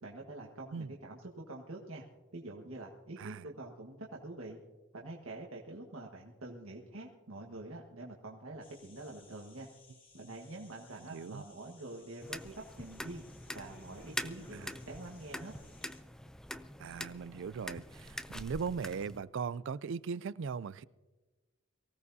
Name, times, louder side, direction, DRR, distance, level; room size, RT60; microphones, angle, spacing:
voice 1, 0.0-2.0 2.3-4.6 4.9-9.7 10.1-13.2 13.5-15.5, right 2 dB, 85° right, 1.5 m, -46 dB
voice 2, 3.2-3.5 11.1-11.4 16.8-20.8, right 5 dB, 60° right, 0.4 m, -39 dB
sound 1, 8.6-16.0, left 3 dB, 40° left, 2.7 m, -61 dB
sound 2, 12.2-19.2, left 1 dB, 5° left, 0.4 m, -44 dB
23.5 x 16.0 x 2.7 m
head